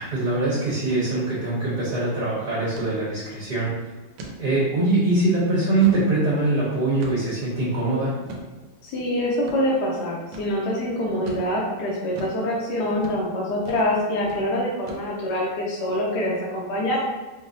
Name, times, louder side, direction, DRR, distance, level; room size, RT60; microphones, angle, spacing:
voice 1, 0.0-3.7 4.4-8.1, right 2 dB, 50° right, -8 dB, 1.4 m, -23 dB
sound 1, 0.8-1.0 1.3-1.4 1.8-2.0 2.7-2.9 3.4-3.6 4.2-4.4 4.9-5.0 5.5-6.1 7.0-7.4 8.3-8.5 9.4-9.6 10.3-10.5 11.3-11.5 12.1-12.4 13.0-13.2 13.7-13.9 14.2-14.4 14.9-15.3, right 2 dB, 80° right, 1.5 m, -39 dB
voice 2, 8.8-17.0, left 1 dB, 75° left, -3 dB, 0.9 m, -25 dB
4.9 x 2.0 x 2.6 m, 1.2 s
omnidirectional pair, 2.3 m